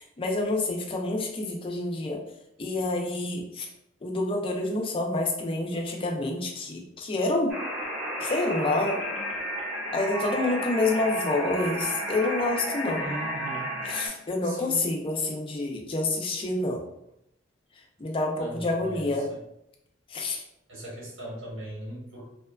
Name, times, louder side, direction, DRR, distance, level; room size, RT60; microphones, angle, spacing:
voice 1, 0.0-2.2 2.6-3.7 4.0-7.6 8.2-9.0 9.9-13.1 13.8-16.8 18.0-19.3 20.1-20.4, left 2 dB, 25° left, 1 dB, 0.4 m, -28 dB
sound 1, 7.5-14.1, equal, 5° right, 0.8 m, -32 dB
voice 2, 13.0-13.7 14.4-14.9 18.4-19.4 20.7-22.2, right 1 dB, 75° right, -6 dB, 1.1 m, -39 dB
2.8 x 2.3 x 2.2 m, 0.80 s
head